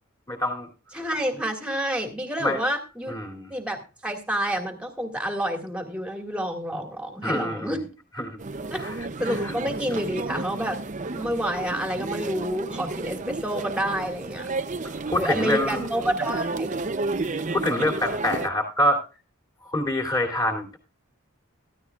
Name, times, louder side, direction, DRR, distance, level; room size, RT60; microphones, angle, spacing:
voice 1, 0.3-0.7 1.0-1.1 2.4-2.7 3.1-3.5 7.2-7.8 8.2-8.4 8.8-9.5 15.1-15.9 17.5-19.0 19.6-20.8, left 1 dB, 15° left, 0 dB, 2.9 m, -26 dB
voice 2, 0.9-3.1 3.5-7.8 8.7-8.8 9.2-10.8 11.1-14.5 15.2-16.8, equal, 5° right, 3 dB, 2.0 m, -29 dB
sound 1, 8.4-18.5, right 3 dB, 35° right, 0.6 m, -32 dB
15.0 x 14.0 x 2.4 m, 0.32 s
head